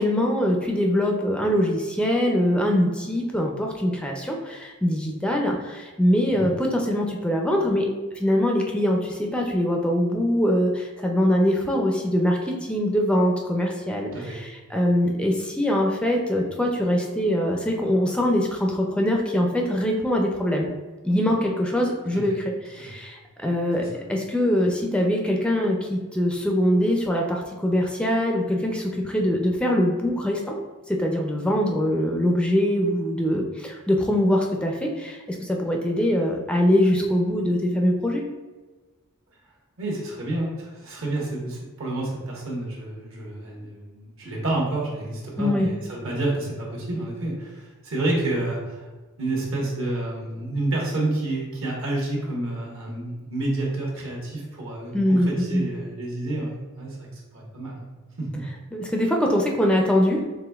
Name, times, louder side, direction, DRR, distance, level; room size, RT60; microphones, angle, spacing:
voice 1, 0.0-7.9 8.1-20.7 21.0-30.5 30.9-38.2 45.4-45.7 54.9-55.6 58.7-60.3, equal, 5° left, 1 dB, 0.4 m, -23 dB
voice 2, 39.8-48.9 49.2-57.8 58.2-58.4, right 2 dB, 65° right, -2 dB, 1.2 m, -29 dB
4.9 x 3.4 x 2.3 m, 1.3 s
head